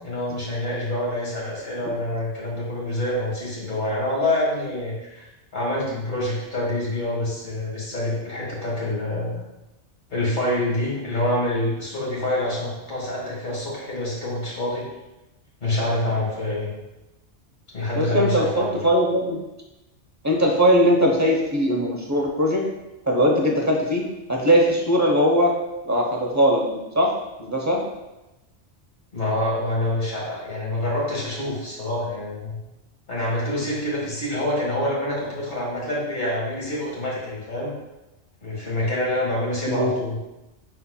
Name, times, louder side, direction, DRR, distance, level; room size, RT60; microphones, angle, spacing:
voice 1, 0.0-5.3 5.5-9.4 10.1-14.9 15.6-16.7 17.7-18.8 29.1-32.6 33.1-37.7 38.4-40.2, left 1 dB, 45° left, -5 dB, 1.6 m, -26 dB
voice 2, 17.9-19.4 20.2-22.6 23.1-24.0 24.3-25.5 25.8-27.1 27.4-27.8 39.7-39.9, equal, 20° right, -1 dB, 0.5 m, -20 dB
5.7 x 4.2 x 2.2 m, 0.98 s
omnidirectional pair, 1.2 m